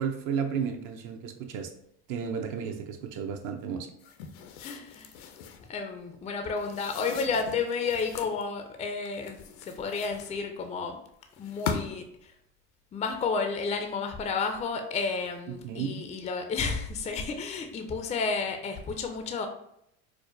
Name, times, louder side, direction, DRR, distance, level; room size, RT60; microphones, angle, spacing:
voice 1, 0.0-1.7 2.1-3.9 15.6-16.0, right 7 dB, 60° right, 5 dB, 0.6 m, -33 dB
sound 1, 4.0-5.7 6.6-8.4 9.1-10.7 11.3-12.1, left 6 dB, 70° left, 0.6 m, -40 dB
voice 2, 4.6-5.1 5.6-11.0 11.4-12.3 12.9-19.5, left 4 dB, 20° left, 6 dB, 0.4 m, -31 dB
4.7 x 2.1 x 2.6 m, 0.74 s
supercardioid pair, 90°, 35 cm